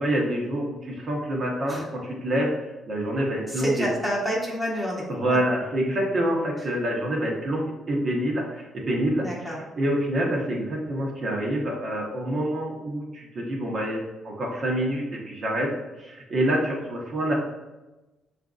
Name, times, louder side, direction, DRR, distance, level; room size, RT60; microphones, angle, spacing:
voice 1, 0.0-2.5 2.9-3.9 5.1-15.7 16.0-17.3, right 1 dB, 50° right, -2 dB, 0.9 m, -27 dB
voice 2, 3.5-5.0 5.3-5.4 9.2-9.6, equal, ahead, -3 dB, 1.0 m, -28 dB
5.7 x 2.5 x 2.4 m, 1.1 s
cardioid pair, 90°, 0 cm